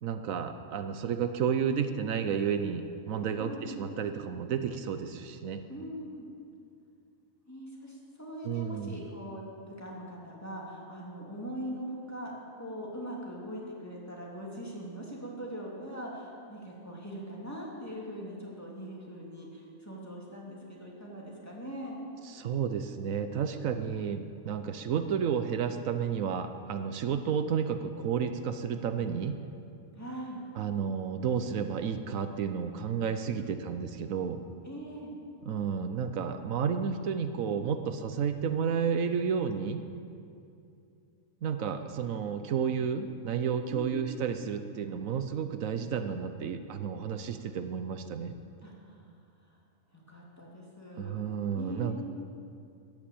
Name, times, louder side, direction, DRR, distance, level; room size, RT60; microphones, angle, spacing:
voice 1, 0.0-5.6 8.4-9.0 22.3-29.4 30.6-34.4 35.5-39.8 41.4-48.3 51.0-52.0, right 7 dB, 85° right, 9 dB, 1.2 m, -31 dB
voice 2, 3.4-3.8 5.7-6.3 7.5-22.0 30.0-30.4 33.3-33.5 34.6-35.1 43.7-44.1 48.6-49.0 49.9-51.2 51.5-52.0, equal, 10° left, -4 dB, 3.0 m, -41 dB
14.0 x 10.5 x 8.5 m, 2.5 s
omnidirectional pair, 1.4 m